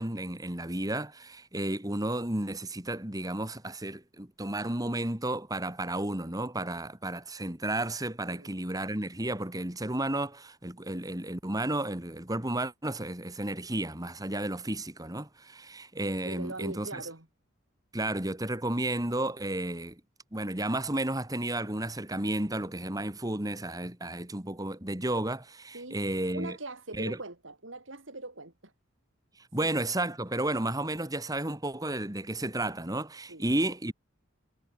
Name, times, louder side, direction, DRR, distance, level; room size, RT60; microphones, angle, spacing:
voice 1, 0.0-17.0 17.9-20.0 20.3-26.6 26.9-27.2 29.5-33.9, right 1 dB, 20° right, 2.5 m, -32 dB
voice 2, 16.2-17.3 25.7-26.0 26.3-28.7 29.6-29.7 33.3-33.4, right 2 dB, 70° right, 4.3 m, -41 dB
head